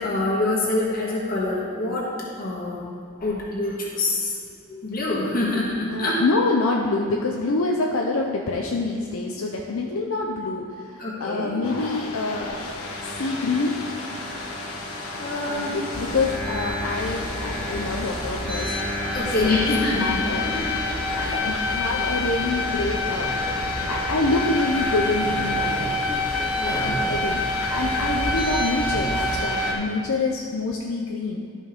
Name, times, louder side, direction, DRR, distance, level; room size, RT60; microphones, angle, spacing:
voice 1, 0.0-2.1 2.4-2.8 3.2-4.4 4.7-6.2 11.0-11.6 15.2-15.7 19.1-20.2 21.1-21.4 26.5-26.9, left 2 dB, 40° left, -5 dB, 1.7 m, -25 dB
voice 2, 5.9-12.6 13.0-13.8 15.4-18.7 19.4-20.5 21.1-25.9 26.6-31.6, left 3 dB, 70° left, 0 dB, 0.6 m, -26 dB
sound 1, 11.6-29.7, left 2 dB, 90° left, 1.2 m, -28 dB
sound 2, 15.9-29.4, right 1 dB, 25° right, 0.6 m, -34 dB
12.5 x 5.4 x 3.7 m, 2.3 s
head